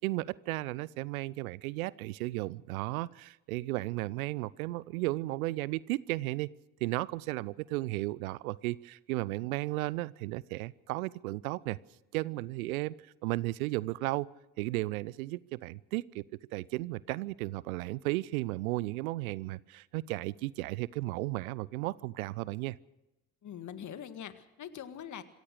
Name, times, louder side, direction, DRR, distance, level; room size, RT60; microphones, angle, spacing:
voice 1, 0.0-6.5 6.8-11.8 12.1-12.9 13.2-14.3 14.6-16.2 16.5-22.8, right 19 dB, 70° right, 23 dB, 0.6 m, -34 dB
voice 2, 23.4-25.2, left 9 dB, 40° left, 11 dB, 1.9 m, -43 dB
26.5 x 15.5 x 6.5 m, 0.94 s
figure-of-eight pair, 55°, 44 cm